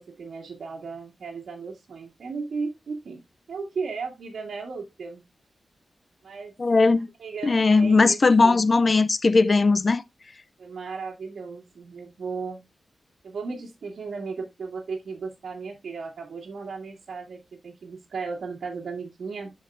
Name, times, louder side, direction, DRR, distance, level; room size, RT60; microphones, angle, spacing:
voice 1, 0.0-5.2 6.2-6.5 7.2-8.6 10.6-12.7 13.2-19.5, right 4 dB, 85° right, 1.8 m, -35 dB
voice 2, 6.6-7.1 7.4-10.0, left 3 dB, 35° left, 0.4 m, -19 dB
12.5 x 4.7 x 2.5 m
wide cardioid pair, 130°, 0 cm